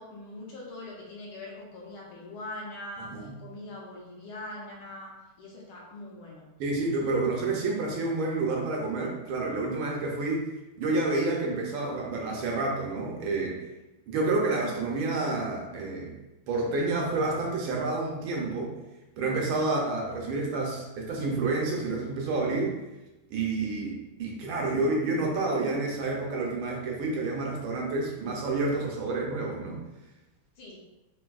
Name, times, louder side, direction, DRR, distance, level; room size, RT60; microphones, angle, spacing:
voice 1, 0.0-6.5 30.6-30.8, left 2 dB, 75° left, -4 dB, 1.5 m, -42 dB
voice 2, 6.6-10.5 10.8-13.6 14.1-16.1 16.5-18.7 19.2-22.8 23.3-29.8, right 3 dB, 75° right, -1 dB, 1.4 m, -29 dB
3.8 x 2.6 x 2.3 m, 1.0 s
omnidirectional pair, 2.4 m